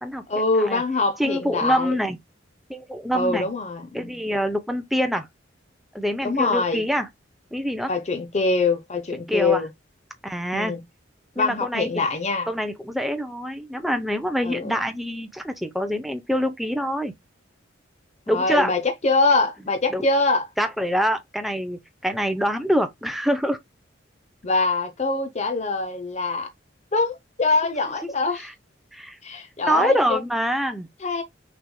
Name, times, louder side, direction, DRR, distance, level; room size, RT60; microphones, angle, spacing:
voice 1, 0.3-1.9 3.1-4.1 6.2-6.8 7.9-9.7 10.5-10.8 11.4-12.5 14.4-14.7 18.3-20.5 24.4-26.5 26.9-28.5 29.2-30.2 31.0-31.2, left 3 dB, 35° left, 0.7 m, -24 dB
voice 2, 1.2-2.2 2.7-3.5 3.9-5.3 5.9-7.1 7.5-7.9 9.1-9.6 10.2-10.8 11.4-12.0 12.5-17.1 18.3-18.7 19.9-20.0 20.6-23.6 28.0-28.1 28.4-28.5 28.9-29.2 29.7-30.9, equal, ahead, 0.6 m, -25 dB
6.1 x 3.4 x 2.2 m
head